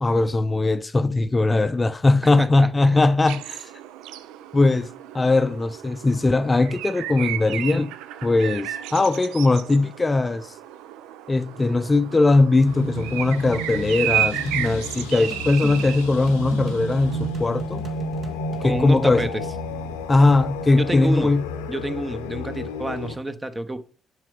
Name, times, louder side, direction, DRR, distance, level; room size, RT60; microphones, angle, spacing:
voice 1, 0.0-3.7 4.5-7.9 8.2-10.5 11.3-17.8 18.6-19.2 20.1-21.4, left 2 dB, 25° left, 0.5 m, -20 dB
voice 2, 2.2-3.1 18.6-19.4 20.8-21.3 21.7-23.9, right 1 dB, 20° right, 0.9 m, -28 dB
sound 1, 3.3-17.3, right 12 dB, 80° right, 0.4 m, -33 dB
sound 2, 12.6-23.1, left 2 dB, 90° left, 0.7 m, -33 dB
sound 3, 13.7-18.7, right 3 dB, 50° right, 1.5 m, -37 dB
7.4 x 5.4 x 3.4 m
hypercardioid pair, 45°, 0 cm